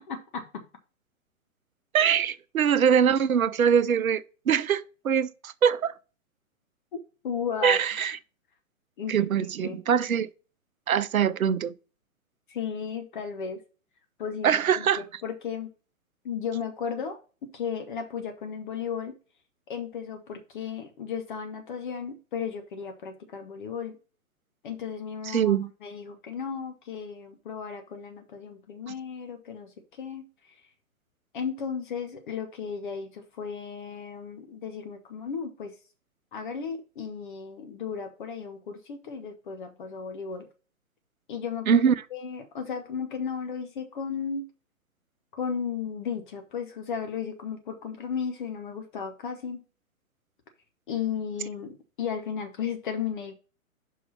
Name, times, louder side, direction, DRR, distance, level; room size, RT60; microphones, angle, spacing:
voice 1, 0.1-0.6 7.2-7.8 9.0-9.3 9.6-9.8 12.5-13.6 14.2-15.7 16.2-19.2 19.7-24.0 24.6-30.6 31.3-35.7 36.3-40.5 41.3-41.8 42.1-44.5 45.3-49.6 50.9-53.3, left 6 dB, 35° left, 0.8 m, -35 dB
voice 2, 1.9-5.9 7.6-8.2 9.1-10.3 10.9-11.7 14.4-15.0 25.3-25.7 41.7-41.9, right 8 dB, 75° right, 0.6 m, -23 dB
5.7 x 4.6 x 5.5 m
figure-of-eight pair, 125°, 42 cm